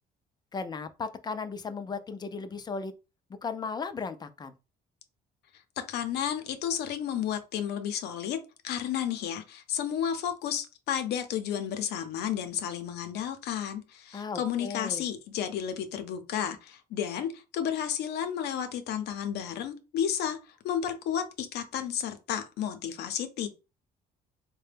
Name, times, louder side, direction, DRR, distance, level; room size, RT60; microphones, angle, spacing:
voice 1, 0.5-2.9 3.4-4.5 14.1-15.0, left 4 dB, 25° left, 0.4 m, -36 dB
voice 2, 5.8-23.5, left 9 dB, 75° left, 0.7 m, -32 dB
4.1 x 2.2 x 3.3 m
cardioid pair, 110°, 17 cm